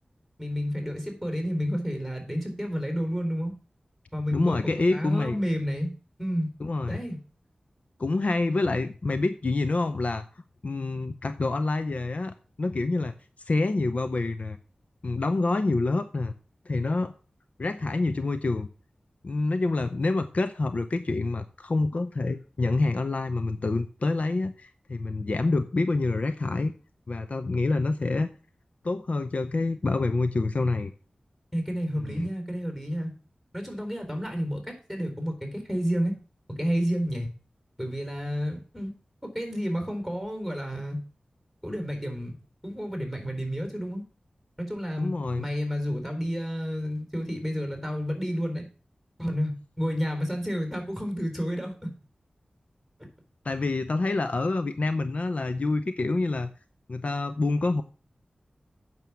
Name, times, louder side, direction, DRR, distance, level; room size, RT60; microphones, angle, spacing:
voice 1, 0.4-3.5 4.1-5.9 6.2-6.5 6.9-7.2 31.5-33.1 33.5-36.1 36.5-37.3 37.8-38.9 39.2-41.0 41.6-42.4 42.6-44.0 44.6-48.6 49.2-51.9, equal, 5° left, 4 dB, 4.1 m, -30 dB
voice 2, 4.3-5.4 6.6-7.0 8.0-10.2 10.6-13.1 13.5-14.6 15.0-16.3 16.7-17.1 17.6-18.7 19.2-26.7 27.1-28.3 28.8-30.9 32.1-32.3 45.0-45.4 53.4-56.5 56.9-57.8, left 3 dB, 55° left, 10 dB, 0.6 m, -27 dB
9.1 x 6.2 x 7.0 m, 0.38 s
wide cardioid pair, 65°, 3 cm